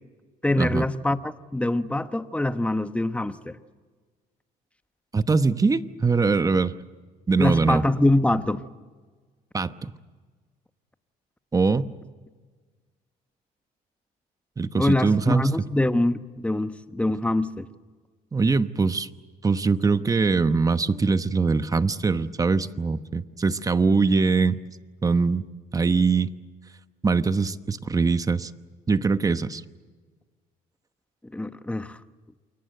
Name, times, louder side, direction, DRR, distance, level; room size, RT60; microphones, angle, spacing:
voice 1, 0.4-3.6 7.4-8.6 14.8-17.7 31.3-32.0, left 1 dB, 5° left, 1.1 m, -24 dB
voice 2, 5.1-6.7 7.3-7.8 9.5-9.9 11.5-11.9 14.6-15.5 18.3-19.1 19.4-24.6 25.0-25.4 25.7-26.3 27.0-28.5 28.9-29.6, right 4 dB, 20° right, 1.0 m, -22 dB
28.5 x 22.5 x 7.9 m
cardioid pair, 110°, 17 cm